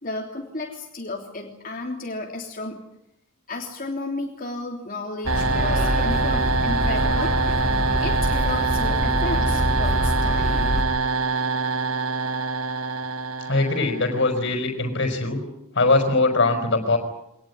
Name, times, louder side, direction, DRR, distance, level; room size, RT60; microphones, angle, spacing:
voice 1, 0.0-2.8 3.5-7.4 8.0-10.7, left 2 dB, 40° left, 1 dB, 3.3 m, -33 dB
sound 1, 5.2-10.8, equal, ahead, 6.2 m, -25 dB
sound 2, 5.3-14.2, right 4 dB, 80° right, 1.3 m, -25 dB
voice 2, 13.5-15.4 15.7-17.0, left 3 dB, 55° left, 3 dB, 4.9 m, -21 dB
25.0 x 19.5 x 9.6 m, 0.83 s
head